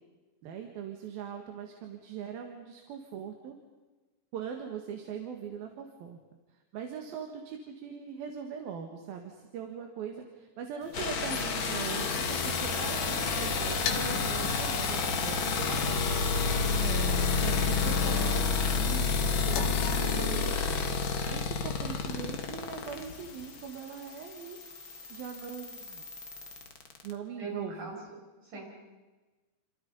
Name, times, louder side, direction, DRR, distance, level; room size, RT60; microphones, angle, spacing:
voice 1, 0.4-3.6 4.3-6.2 6.7-16.3 16.8-18.5 18.7-21.0 21.3-24.6 25.1-26.0 27.0-27.9, right 7 dB, 60° right, 4 dB, 3.3 m, -41 dB
sound 1, 10.8-23.6, left 4 dB, 60° left, 2.9 m, -36 dB
sound 2, 10.9-27.1, left 5 dB, 80° left, 1.1 m, -31 dB
voice 2, 17.8-18.2 27.4-28.7, right 2 dB, 45° right, 0 dB, 7.2 m, -42 dB
28.5 x 27.5 x 5.4 m, 1.2 s
omnidirectional pair, 5.2 m